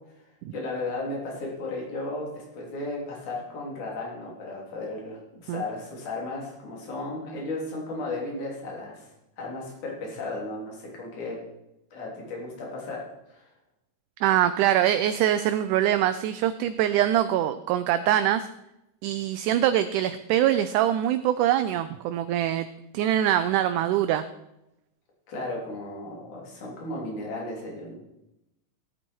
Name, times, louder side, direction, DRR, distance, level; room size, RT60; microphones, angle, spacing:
voice 1, 0.5-9.1 9.4-11.4 11.9-13.5 25.3-27.9, left 2 dB, 60° left, -2 dB, 4.7 m, -35 dB
voice 2, 14.2-18.5 19.0-22.7 22.9-24.2, right 11 dB, 80° right, 11 dB, 1.9 m, -23 dB
16.0 x 9.1 x 4.5 m, 0.89 s
omnidirectional pair, 3.9 m